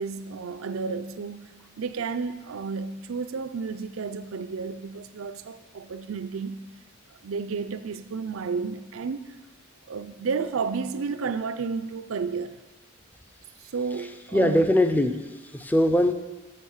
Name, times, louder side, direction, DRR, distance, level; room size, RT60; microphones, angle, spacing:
voice 1, 0.0-6.6 7.2-9.3 9.9-12.6 13.7-14.6, right 5 dB, 80° right, 0.5 m, -32 dB
voice 2, 14.3-16.1, left 1 dB, 10° left, 0.5 m, -22 dB
7.3 x 6.5 x 6.5 m
head